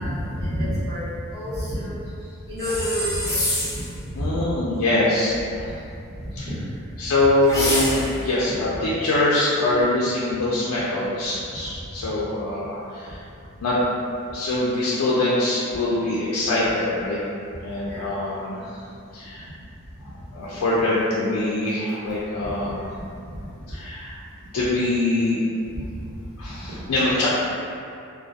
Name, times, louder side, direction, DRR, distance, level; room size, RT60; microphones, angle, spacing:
voice 1, 0.0-2.0 2.5-3.4 3.7-3.8 4.2-4.4 6.2-6.3 6.9-7.0 8.7-8.9 12.0-12.1 17.9-18.1 20.5-21.2 22.4-22.5 23.3-23.4 25.7-25.8 26.5-26.6, equal, 50° right, -11 dB, 0.9 m, -29 dB
sound 1, 2.6-3.9 7.4-8.3, left 1 dB, 15° left, 0.4 m, -26 dB
voice 2, 4.2-5.7 6.4-6.5 7.0-13.2 13.6-13.8 14.3-17.2 17.6-18.8 19.1-19.5 20.0-22.8 23.7-24.1 24.5-25.4 26.4-27.3, left 2 dB, 80° left, -8 dB, 0.4 m, -23 dB
2.2 x 2.2 x 2.7 m, 2.6 s
head